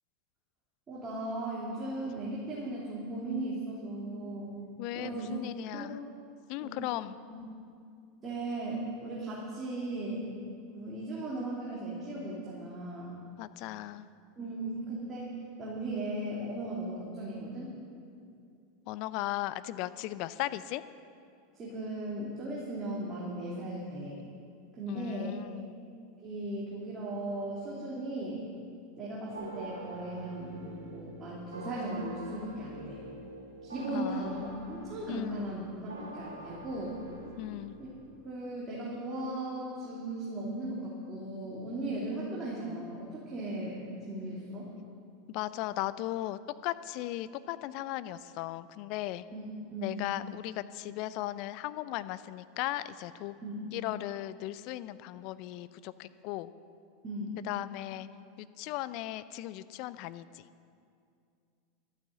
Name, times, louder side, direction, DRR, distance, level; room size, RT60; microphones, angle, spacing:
voice 1, 0.9-4.5 4.9-5.3 5.7-5.9 6.6-6.8 7.3-7.4 8.2-10.2 10.7-13.1 14.4-15.3 15.6-17.7 21.5-24.2 24.7-25.4 26.2-28.4 29.0-33.0 33.6-37.0 37.8-37.9 38.2-43.8 44.1-44.7 49.3-49.4 49.7-50.1 53.4-53.7 57.0-57.4, right 1 dB, 25° right, -6 dB, 3.1 m, -37 dB
voice 2, 4.8-6.0 6.5-7.2 13.4-14.1 18.9-20.8 24.9-25.7 33.9-34.5 35.1-35.5 37.4-37.8 45.3-49.2 49.8-53.4 53.7-56.5 57.4-58.1 58.4-60.4, left 15 dB, 50° left, 15 dB, 0.5 m, -37 dB
sound 1, 29.3-38.1, right 2 dB, 80° right, 2.8 m, -45 dB
12.5 x 9.2 x 7.8 m, 2.4 s
figure-of-eight pair, 85°, 0 cm